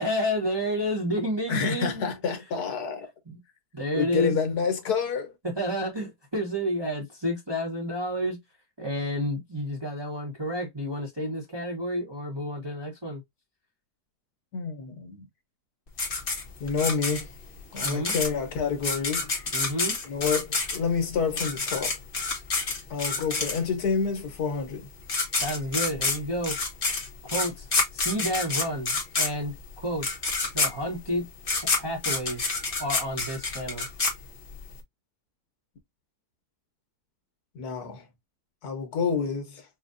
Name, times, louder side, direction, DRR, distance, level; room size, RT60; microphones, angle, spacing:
voice 1, 0.0-2.1 3.3-3.4 3.7-4.4 5.4-8.4 8.8-13.2 17.8-18.1 19.5-19.9 25.4-26.6 27.3-27.7 27.9-29.5 29.8-30.1 30.5-31.3 31.7-32.4 32.8-33.9, equal, 15° right, 1.0 m, -30 dB
voice 2, 1.5-3.1 3.9-5.3 14.5-15.3 16.6-17.3 17.7-19.3 20.0-22.0 22.9-24.9 37.6-38.1 38.6-39.6, left 5 dB, 70° left, 1.6 m, -28 dB
sound 1, 16.0-23.9 24.7-24.8 25.0-34.7, left 3 dB, 35° left, 1.1 m, -28 dB
5.1 x 2.4 x 2.6 m
omnidirectional pair, 1.8 m